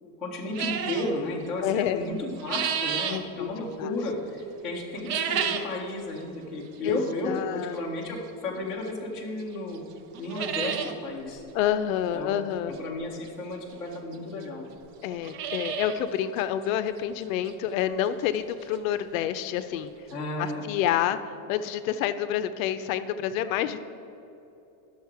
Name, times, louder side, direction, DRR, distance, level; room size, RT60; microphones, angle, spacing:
voice 1, 0.0-9.8 10.2-11.4 12.1-12.4 12.7-14.6 20.1-20.6, left 2 dB, ahead, -10 dB, 0.3 m, -33 dB
sound 1, 0.5-1.1 2.1-3.2 4.9-5.8 6.2-6.3 7.1-7.2 8.9-9.0 9.4-9.5 9.8-9.9 10.1-10.9 11.3-11.4 11.6-11.7 13.3-13.4 14.1-14.2 14.4-14.5 15.0-16.0 16.4-16.5 17.0-17.1 17.5-17.6 19.3-19.4 19.6-19.7 20.1-20.2, right 8 dB, 80° right, 0.9 m, -30 dB
voice 2, 1.6-2.1 3.1-3.5 3.8-3.9 6.8-7.8 11.5-12.7 15.0-19.9 20.4-23.8, left 10 dB, 60° left, 11 dB, 0.5 m, -28 dB
11.0 x 6.4 x 4.7 m, 2.9 s
supercardioid pair, 180°, 46 cm